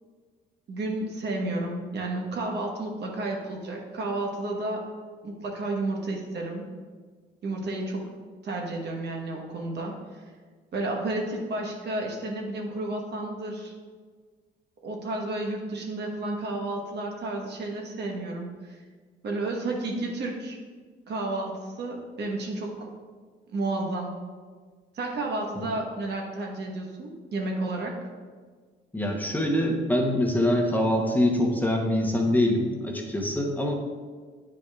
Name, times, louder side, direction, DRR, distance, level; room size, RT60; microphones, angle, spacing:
voice 1, 0.7-4.9 5.2-6.7 7.4-8.1 8.4-10.2 10.7-13.7 14.8-18.8 19.2-20.6 21.1-22.9 23.5-24.2 24.9-27.9, right 2 dB, 60° right, 0 dB, 1.2 m, -31 dB
voice 2, 28.9-33.7, left 1 dB, 10° left, 0 dB, 0.9 m, -24 dB
8.7 x 5.1 x 2.4 m, 1.5 s
cardioid pair, 90°, 20 cm